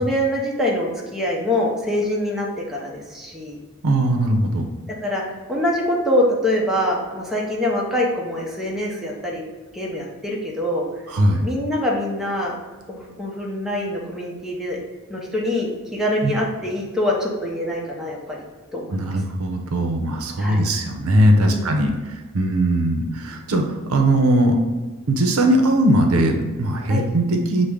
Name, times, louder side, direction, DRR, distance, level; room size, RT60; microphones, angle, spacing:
voice 1, 0.0-3.6 5.0-9.4 9.7-10.9 11.4-12.5 12.9-14.8 15.1-18.4 18.7-19.2 20.4-20.6 21.4-21.7 26.9-27.0, left 1 dB, ahead, -3 dB, 0.7 m, -24 dB
voice 2, 3.8-4.7 11.1-11.5 16.2-16.3 18.9-24.6 25.1-27.7, right 1 dB, 80° right, 3 dB, 0.6 m, -19 dB
6.2 x 2.1 x 3.4 m, 1.3 s
head